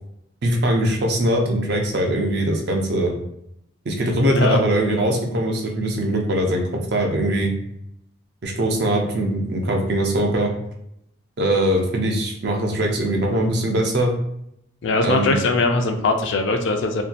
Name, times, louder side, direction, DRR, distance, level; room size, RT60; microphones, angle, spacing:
voice 1, 0.4-3.1 3.9-6.6 6.9-7.5 8.4-10.5 11.4-14.1 15.0-15.4, right 1 dB, 55° right, 1 dB, 0.5 m, -21 dB
voice 2, 4.3-4.6 14.8-17.0, left 3 dB, 65° left, 5 dB, 0.4 m, -21 dB
2.6 x 2.2 x 2.4 m, 0.75 s
head